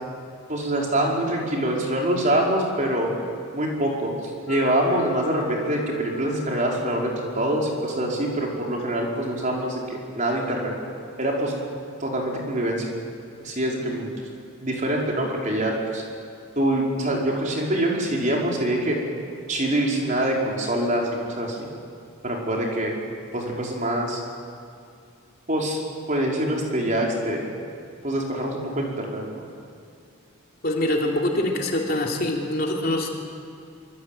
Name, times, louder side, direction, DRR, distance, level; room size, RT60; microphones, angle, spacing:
voice 1, 0.5-3.1 3.5-10.7 11.2-11.5 12.0-12.9 13.4-14.1 14.6-16.0 16.5-19.0 19.5-21.7 22.2-22.9 23.3-24.2 25.5-25.8 26.1-27.4 28.0-29.4, right 1 dB, 35° right, -2 dB, 5.0 m, -25 dB
Wind instrument woodwind instrument, 4.4-9.6, equal, 85° left, 4.6 m, -39 dB
voice 2, 30.6-33.1, left 1 dB, 45° left, 0 dB, 3.6 m, -24 dB
25.5 x 25.0 x 9.2 m, 2.4 s
head